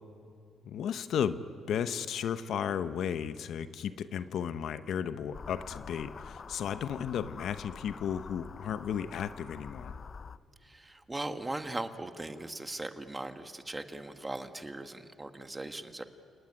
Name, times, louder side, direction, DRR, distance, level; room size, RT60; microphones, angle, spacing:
voice 1, 0.6-1.4 1.7-10.0, left 8 dB, 70° left, 12 dB, 0.9 m, -34 dB
sound 1, 5.3-10.4, left 5 dB, 40° left, 0.6 m, -46 dB
voice 2, 10.6-16.0, right 2 dB, 15° right, 8 dB, 1.6 m, -39 dB
29.5 x 19.0 x 9.8 m, 2.4 s
cardioid pair, 90°, 0 cm